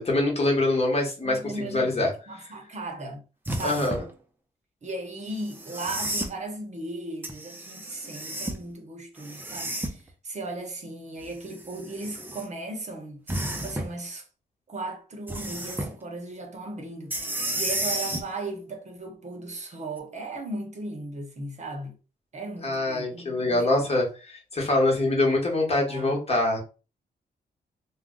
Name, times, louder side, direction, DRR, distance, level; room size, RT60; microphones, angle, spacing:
voice 1, 0.0-2.1 3.6-4.0 22.6-26.6, left 2 dB, 35° left, 1.1 m, -24 dB
voice 2, 1.2-3.2 3.5-3.9 4.8-13.3 13.6-14.2 14.7-21.9 22.3-24.0 25.9-26.3, right 2 dB, 40° right, 0.8 m, -37 dB
sound 1, 3.4-4.1 5.5-6.3 7.2-8.6 9.2-10.1 11.2-12.4 13.3-13.9 15.3-15.9 17.1-18.3 20.0-20.1, right 1 dB, 10° right, 0.5 m, -32 dB
2.4 x 2.1 x 3.7 m
cardioid pair, 85°, 17 cm